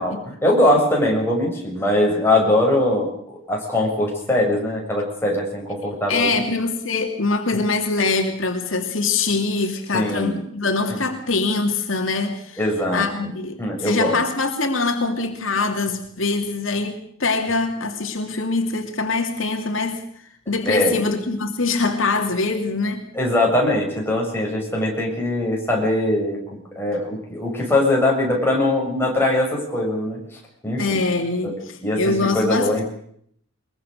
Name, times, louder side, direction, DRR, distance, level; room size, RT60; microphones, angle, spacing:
voice 1, 0.0-6.4 9.9-10.4 10.9-11.0 12.6-13.1 13.6-14.2 20.7-21.0 23.1-26.4 26.8-30.2 30.6-31.0 31.4-31.5 31.8-32.8, left 1 dB, 10° left, 7.1 m, -21 dB
voice 2, 6.1-12.6 12.9-20.0 20.5-23.0 30.8-32.8, left 3 dB, 65° left, 2.7 m, -23 dB
23.0 x 22.5 x 6.7 m
head